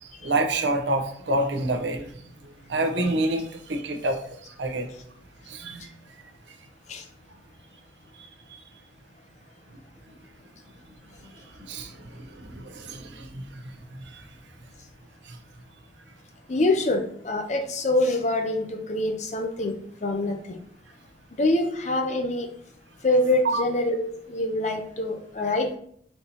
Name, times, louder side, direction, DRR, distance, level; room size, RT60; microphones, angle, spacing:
voice 1, 0.0-4.9 5.5-5.9 6.5-6.6 8.1-8.6 11.2-14.4 15.2-15.4 23.4-23.6, right 2 dB, 70° right, 4 dB, 0.7 m, -29 dB
voice 2, 16.5-19.7 20.0-20.6 21.4-22.5 23.0-25.8, left 2 dB, 35° left, 5 dB, 0.5 m, -25 dB
4.4 x 2.7 x 4.0 m, 0.65 s
head